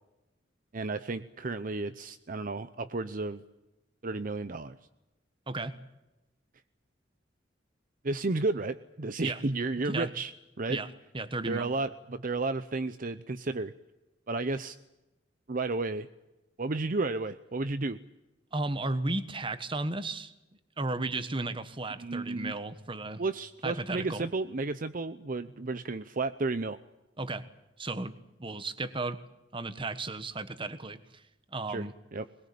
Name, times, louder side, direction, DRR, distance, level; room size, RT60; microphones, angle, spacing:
voice 1, 0.7-3.4 4.0-4.8 8.0-10.8 11.4-13.7 14.3-14.8 15.5-16.1 16.6-18.0 22.0-22.5 23.2-26.8 31.7-32.2, right 3 dB, 50° right, 11 dB, 0.8 m, -32 dB
voice 2, 5.5-5.8 9.2-9.4 9.8-10.1 10.7-10.9 11.1-11.7 18.5-20.3 20.8-23.2 23.6-24.2 27.2-27.4 27.8-28.1 28.4-29.2 29.5-31.2 31.5-31.9, right 2 dB, 30° right, 12 dB, 1.4 m, -34 dB
21.5 x 21.5 x 8.6 m, 1.0 s
head